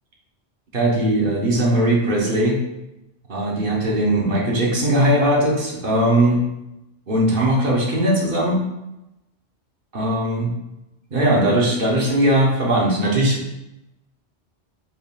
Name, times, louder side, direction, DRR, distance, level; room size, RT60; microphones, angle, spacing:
voice 1, 0.7-2.6 3.3-6.4 7.1-8.6 9.9-10.5 11.1-13.5, right 1 dB, 50° right, -2 dB, 0.9 m, -19 dB
4.4 x 3.5 x 2.3 m, 0.91 s
omnidirectional pair, 1.3 m